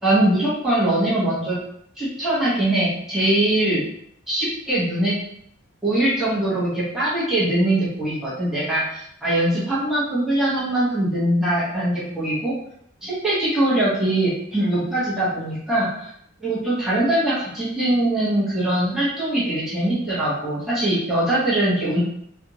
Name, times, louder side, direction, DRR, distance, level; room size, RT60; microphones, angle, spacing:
voice 1, 0.0-1.6 2.0-3.8 4.3-5.1 5.8-12.5 13.0-16.1 16.4-22.0, right 1 dB, ahead, -10 dB, 1.2 m, -22 dB
3.4 x 2.5 x 2.9 m, 0.70 s
head